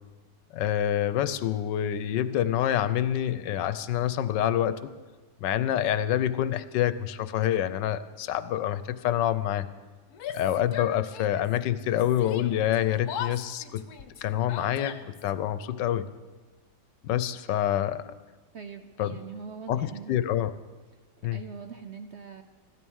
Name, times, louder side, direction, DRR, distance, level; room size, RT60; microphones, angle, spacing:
voice 1, 0.5-4.9 5.4-9.7 10.3-13.8 14.2-16.1 17.0-18.1 19.0-19.2 19.7-20.5 21.2-21.4, left 11 dB, 85° left, 14 dB, 1.4 m, -27 dB
Yell, 10.1-11.6 11.8-15.3, left 8 dB, 65° left, 1.2 m, -39 dB
voice 2, 18.5-20.2 21.3-22.4, right 6 dB, 60° right, 7 dB, 0.7 m, -42 dB
15.5 x 12.5 x 6.3 m, 1.3 s
omnidirectional pair, 1.9 m